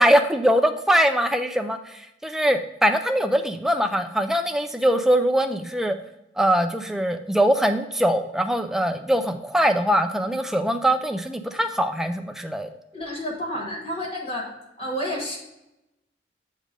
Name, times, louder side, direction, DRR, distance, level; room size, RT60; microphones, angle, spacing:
voice 1, 0.0-1.8 2.2-6.0 6.4-12.7, equal, ahead, 6 dB, 0.3 m, -22 dB
voice 2, 12.9-14.5 14.8-15.4, equal, 30° left, -1 dB, 1.3 m, -30 dB
7.4 x 3.4 x 5.0 m, 0.90 s
head